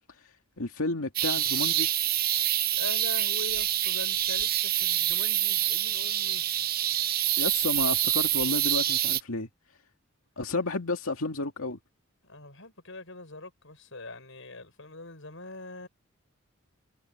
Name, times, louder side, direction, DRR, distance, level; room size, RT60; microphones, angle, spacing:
voice 1, 0.6-1.9 7.4-9.5 10.4-11.8, left 2 dB, 85° left, 2.3 m, -31 dB
sound 1, 1.2-9.2, right 13 dB, 45° right, 0.8 m, -26 dB
voice 2, 2.8-6.4 12.2-15.9, left 2 dB, 65° left, 7.2 m, -42 dB
head